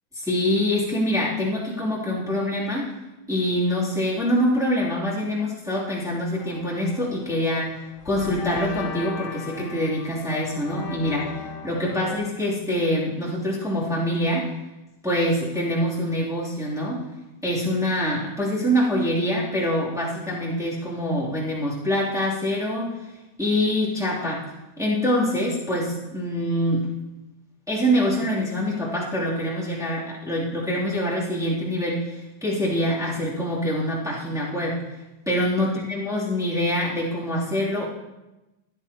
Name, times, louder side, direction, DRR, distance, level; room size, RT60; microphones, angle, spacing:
voice 1, 0.2-2.9 3.3-14.5 15.0-17.0 17.4-22.9 23.4-24.4 24.8-26.8 27.7-34.8 35.2-37.8, equal, ahead, -7 dB, 0.9 m, -25 dB
sound 1, 6.4-12.2, left 5 dB, 75° left, 2.7 m, -38 dB
24.5 x 9.9 x 2.9 m, 1.0 s
omnidirectional pair, 5.8 m